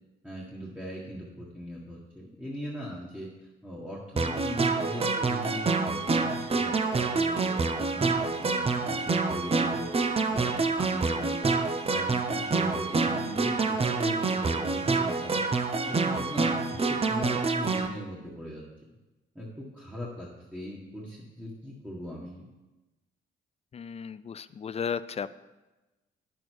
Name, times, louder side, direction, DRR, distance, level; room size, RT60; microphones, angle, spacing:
voice 1, 0.2-3.3 3.6-7.6 7.9-10.0 10.3-11.6 11.9-15.4 15.8-18.6 19.3-22.5, equal, 5° right, -5 dB, 1.7 m, -39 dB
sound 1, 4.2-17.9, right 4 dB, 30° right, 0.7 m, -27 dB
voice 2, 23.7-25.3, left 7 dB, 30° left, 15 dB, 0.4 m, -34 dB
9.3 x 6.7 x 4.6 m, 1.1 s
cardioid pair, 90°, 20 cm